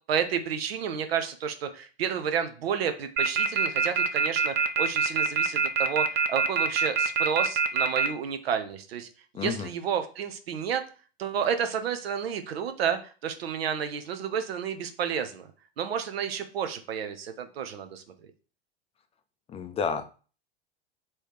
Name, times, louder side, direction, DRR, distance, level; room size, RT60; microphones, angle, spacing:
voice 1, 0.1-9.1 9.3-10.8 11.2-15.5 15.8-18.3, right 7 dB, 80° right, 9 dB, 0.7 m, -31 dB
sound 1, 3.2-8.1, right 6 dB, 35° right, 0.5 m, -23 dB
voice 2, 9.3-9.7 19.5-20.0, left 6 dB, 20° left, 8 dB, 0.4 m, -30 dB
3.2 x 3.0 x 4.7 m, 0.37 s
hypercardioid pair, 95°, 30 cm